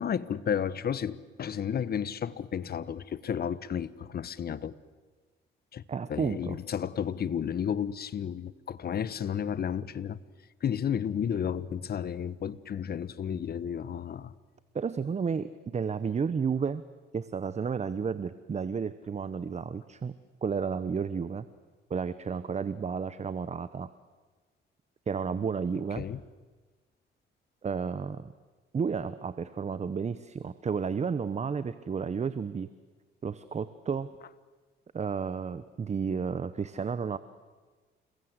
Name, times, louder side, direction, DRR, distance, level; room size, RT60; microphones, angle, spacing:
voice 1, 0.0-4.7 5.7-5.8 6.1-10.2 10.6-14.3 26.0-26.2, left 8 dB, 50° left, 17 dB, 1.1 m, -32 dB
voice 2, 5.9-6.6 14.7-16.8 17.1-20.1 20.4-21.5 21.9-23.9 25.1-26.1 27.6-28.3 28.7-32.7 33.2-34.1 34.9-37.2, right 6 dB, 35° right, 14 dB, 0.9 m, -32 dB
29.5 x 21.0 x 8.1 m, 1.4 s
cardioid pair, 90°, 20 cm